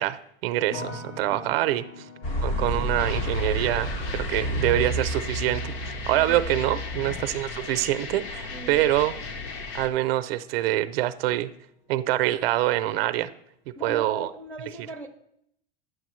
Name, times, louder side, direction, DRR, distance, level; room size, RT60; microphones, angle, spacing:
voice 1, 0.0-2.0 2.4-9.2 9.7-11.5 11.9-13.3 13.8-14.3, right 14 dB, 85° right, 12 dB, 0.5 m, -25 dB
sound 1, 0.7-11.8 12.0-12.8, left 3 dB, 80° left, 1.2 m, -47 dB
voice 2, 0.8-1.6 8.5-8.9 13.8-15.1, right 2 dB, 5° left, 0 dB, 0.5 m, -40 dB
sound 2, 2.2-7.3, equal, 60° left, 2.5 m, -30 dB
sound 3, 3.0-9.9, left 4 dB, 45° left, 0.7 m, -37 dB
9.1 x 6.4 x 3.1 m, 0.73 s
supercardioid pair, 150°, 29 cm